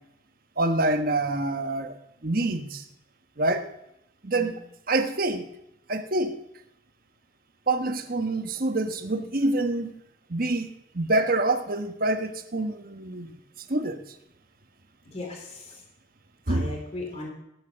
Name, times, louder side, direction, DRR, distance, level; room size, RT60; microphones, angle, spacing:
voice 1, 0.6-2.8 3.4-3.7 4.2-4.6 4.9-5.5 5.9-6.4 7.7-9.9 10.3-10.7 10.9-13.3 13.7-14.0 16.5-16.7, right 2 dB, 45° right, 1.2 m, -26 dB
voice 2, 15.1-15.8 16.5-17.3, left 2 dB, 30° left, 3.2 m, -37 dB
17.0 x 10.5 x 6.4 m
head